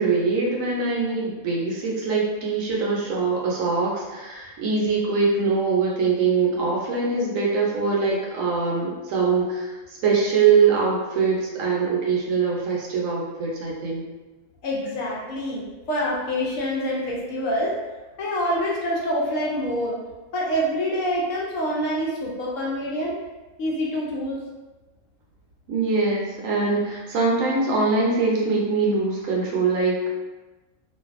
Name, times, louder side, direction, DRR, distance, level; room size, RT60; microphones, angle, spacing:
voice 1, 0.0-14.0 25.7-30.1, right 4 dB, 70° right, -3 dB, 0.9 m, -23 dB
voice 2, 14.6-17.8 18.2-20.0 20.3-23.2 23.6-24.4, equal, 70° left, -4 dB, 0.9 m, -26 dB
2.5 x 2.4 x 2.4 m, 1.2 s
omnidirectional pair, 1.5 m